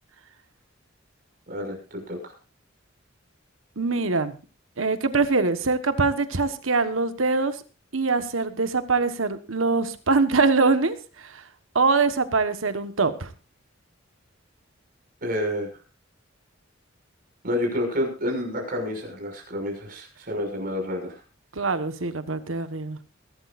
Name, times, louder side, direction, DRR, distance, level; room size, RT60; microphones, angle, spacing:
voice 1, 1.5-2.3 15.2-15.7 17.4-21.1, left 1 dB, 45° right, 2 dB, 6.3 m, -29 dB
voice 2, 3.8-4.3 4.8-7.6 7.9-11.4 11.7-13.3 21.5-23.0, right 4 dB, 90° right, 11 dB, 1.4 m, -23 dB
22.5 x 12.5 x 2.6 m, 0.33 s
head